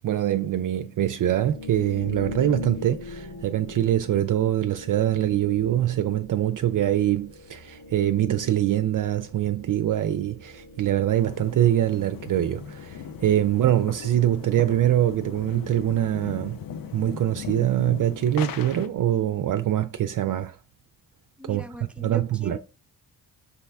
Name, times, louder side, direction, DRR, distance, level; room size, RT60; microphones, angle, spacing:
voice 1, 0.0-16.6 16.9-20.6 21.5-21.6 22.0-22.6, right 12 dB, 50° right, 0.5 m, -24 dB
sound 1, 1.4-17.2, left 4 dB, 70° left, 2.0 m, -42 dB
sound 2, 11.1-18.9, left 8 dB, 55° left, 0.6 m, -39 dB
voice 2, 21.4-22.6, left 1 dB, 5° right, 0.8 m, -41 dB
6.2 x 2.1 x 3.4 m
supercardioid pair, 50°, 42 cm